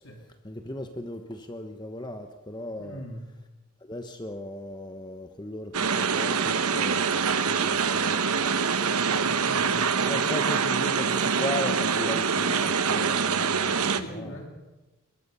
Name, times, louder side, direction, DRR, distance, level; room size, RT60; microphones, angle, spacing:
voice 1, 0.4-3.0 3.8-8.6 9.6-14.4, left 1 dB, 20° left, 1.0 m, -37 dB
voice 2, 2.8-3.3 8.8-9.9 13.8-14.7, equal, 65° left, 3.6 m, -41 dB
sound 1, 5.7-14.0, right 6 dB, 85° right, 1.1 m, -25 dB
22.5 x 21.5 x 5.6 m
head